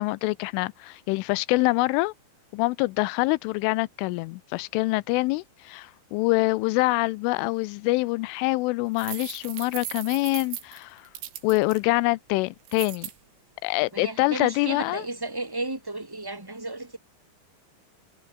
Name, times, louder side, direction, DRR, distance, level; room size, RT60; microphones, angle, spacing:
voice 1, 0.0-2.1 2.5-11.1 11.4-13.1 13.6-15.0, left 22 dB, 90° left, 3.2 m, -25 dB
sound 1, 9.0-11.8 12.7-13.1, right 12 dB, 85° right, 5.0 m, -38 dB
voice 2, 13.9-17.0, right 2 dB, 5° right, 5.5 m, -33 dB
omnidirectional pair, 5.5 m